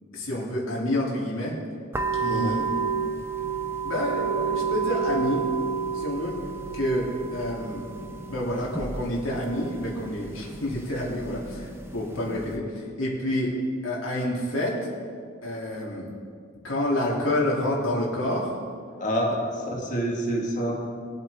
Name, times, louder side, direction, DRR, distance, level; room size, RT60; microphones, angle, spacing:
voice 1, 0.1-1.5 2.1-2.7 3.8-5.5 5.9-6.4 6.7-7.8 8.3-13.6 13.8-14.9 15.4-16.1 16.6-18.5, left 1 dB, 80° left, -3 dB, 3.0 m, -28 dB
sound 1, 1.9-12.6, right 5 dB, 10° right, 0.6 m, -31 dB
voice 2, 19.0-20.8, equal, 40° left, -2 dB, 2.0 m, -27 dB
21.0 x 8.0 x 3.7 m, 2.2 s
head